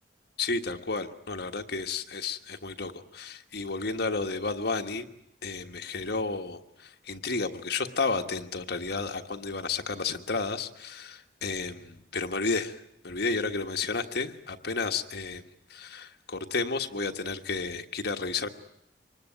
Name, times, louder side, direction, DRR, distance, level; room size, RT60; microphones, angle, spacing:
voice 1, 0.4-5.1 5.4-12.8 13.0-15.4 15.7-18.5, left 4 dB, 60° left, 5 dB, 1.5 m, -32 dB
25.5 x 20.5 x 9.1 m, 0.79 s
head